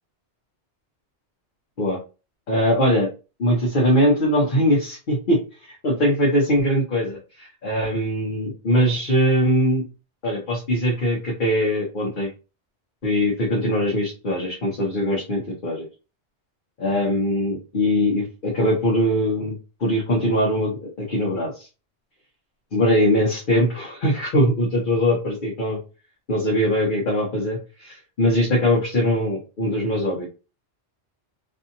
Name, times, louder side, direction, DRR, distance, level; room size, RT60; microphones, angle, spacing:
voice 1, 2.5-3.1 3.4-9.8 10.2-12.3 13.0-15.9 16.8-21.7 22.7-25.8 26.3-30.3, equal, 50° left, -4 dB, 0.9 m, -21 dB
2.7 x 2.7 x 2.5 m, 0.32 s
omnidirectional pair, 1.2 m